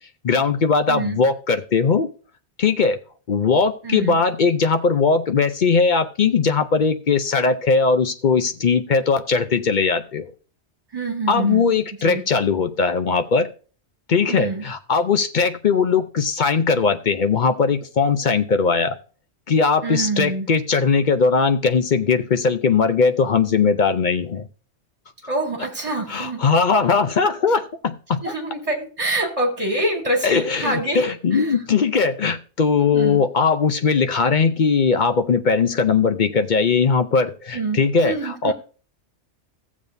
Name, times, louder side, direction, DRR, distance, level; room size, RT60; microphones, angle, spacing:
voice 1, 0.2-2.1 2.6-3.0 3.3-10.3 11.3-13.5 14.1-19.0 19.5-24.5 26.1-28.2 30.2-38.5, left 5 dB, 50° left, 8 dB, 0.7 m, -19 dB
voice 2, 0.9-1.2 3.8-4.2 10.9-11.6 12.0-12.2 14.3-14.7 19.8-20.5 25.3-26.4 28.2-31.6 32.8-33.2 37.5-38.5, right 2 dB, 30° right, 2 dB, 2.3 m, -26 dB
15.5 x 7.3 x 2.6 m, 0.38 s
omnidirectional pair, 1.2 m